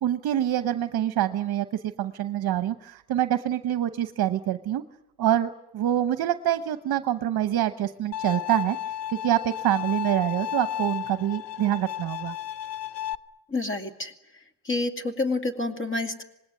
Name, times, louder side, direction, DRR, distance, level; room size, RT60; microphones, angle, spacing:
voice 1, 0.0-4.8 5.2-8.8 9.1-12.3, right 12 dB, 50° right, 11 dB, 1.0 m, -26 dB
Bowed string instrument, 8.1-13.1, left 11 dB, 60° left, 0.9 m, -33 dB
voice 2, 13.5-14.1 14.7-16.2, left 2 dB, 25° left, 7 dB, 2.4 m, -28 dB
26.5 x 20.5 x 9.6 m, 0.90 s
cardioid pair, 160°, 48 cm